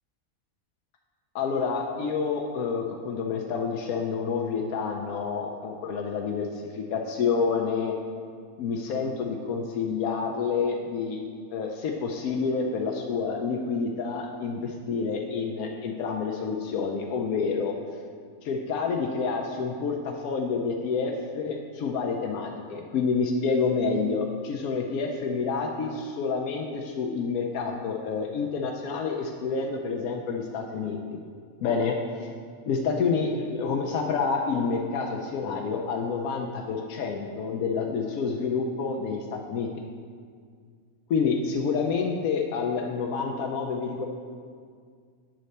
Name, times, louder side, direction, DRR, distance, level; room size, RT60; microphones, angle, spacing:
voice 1, 1.3-7.9 8.6-11.2 11.5-17.7 18.4-31.2 31.6-31.9 32.2-32.3 32.7-39.7 41.1-44.1, left 5 dB, 90° left, 1 dB, 1.1 m, -28 dB
9.1 x 4.1 x 6.5 m, 2.1 s
omnidirectional pair, 1.5 m